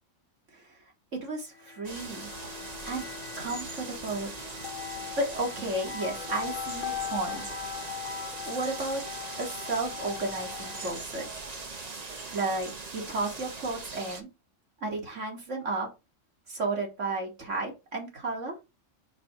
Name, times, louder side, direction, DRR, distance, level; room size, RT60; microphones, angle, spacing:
voice 1, 1.2-2.3 2.9-3.0 3.4-4.3 5.2-7.4 8.5-9.0 9.4-11.3 12.3-14.3 14.8-15.9 16.5-18.6, right 2 dB, 75° right, 1 dB, 2.6 m, -33 dB
sound 1, 1.6-11.1, left 8 dB, 80° left, 1.2 m, -40 dB
sound 2, 1.8-14.2, right 3 dB, 35° right, 1.0 m, -41 dB
5.1 x 4.3 x 6.1 m, 0.25 s
omnidirectional pair, 1.3 m